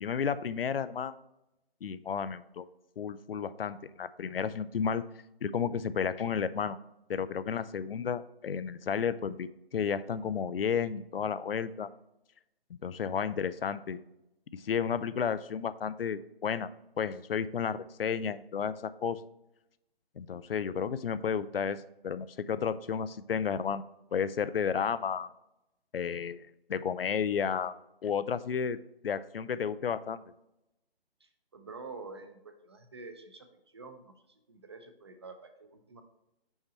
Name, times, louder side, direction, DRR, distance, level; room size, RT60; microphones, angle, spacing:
voice 1, 0.0-1.1 1.8-2.6 3.0-5.0 5.4-6.8 7.1-11.9 12.8-14.0 14.5-16.7 17.0-19.2 20.2-23.8 24.1-25.3 25.9-26.4 26.7-27.7 28.0-28.8 29.0-30.2, left 7 dB, 65° left, 15 dB, 0.4 m, -32 dB
voice 2, 31.2-36.0, right 3 dB, 25° right, 8 dB, 0.5 m, -48 dB
5.7 x 4.4 x 4.0 m, 0.88 s
figure-of-eight pair, 155°, 31 cm